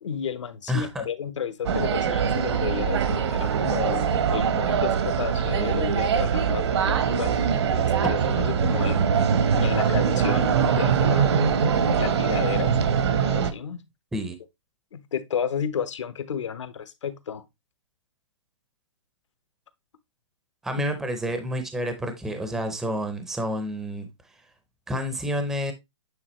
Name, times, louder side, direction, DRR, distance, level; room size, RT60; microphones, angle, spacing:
voice 1, 0.0-9.0 9.5-11.3 12.0-12.7 13.2-13.8 14.9-17.4, left 7 dB, 70° left, 1.0 m, -32 dB
voice 2, 0.7-1.1 6.9-7.0 14.1-14.3 20.6-24.1 24.9-25.7, equal, ahead, 0.6 m, -29 dB
sound 1, 1.7-13.5, right 7 dB, 60° right, 0.9 m, -23 dB
8.8 x 3.8 x 3.0 m
hypercardioid pair, 160°, 16 cm